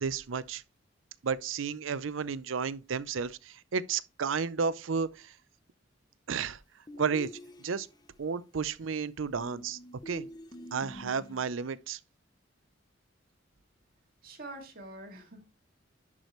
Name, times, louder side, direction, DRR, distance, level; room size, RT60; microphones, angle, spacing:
voice 1, 0.0-0.6 1.2-5.3 6.3-6.6 7.0-7.3 7.6-7.9 8.2-9.8 10.1-10.3 10.7-12.0, right 5 dB, 85° right, 0.6 m, -32 dB
sound 1, 6.9-8.1 9.4-11.6, left 1 dB, 20° left, 0.7 m, -46 dB
voice 2, 14.2-15.5, right 2 dB, 50° right, 2.3 m, -45 dB
10.5 x 4.8 x 3.1 m
head